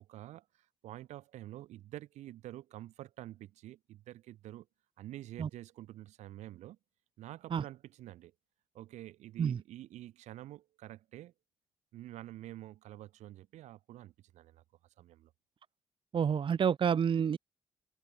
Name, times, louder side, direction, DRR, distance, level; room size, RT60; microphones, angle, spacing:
voice 1, 0.0-4.7 5.0-6.8 7.2-8.3 8.7-11.3 11.9-14.6 15.0-15.3, right 14 dB, 70° right, 7.2 m, -48 dB
voice 2, 16.1-17.4, right 7 dB, 45° right, 0.7 m, -28 dB
hypercardioid pair, 40°, 12 cm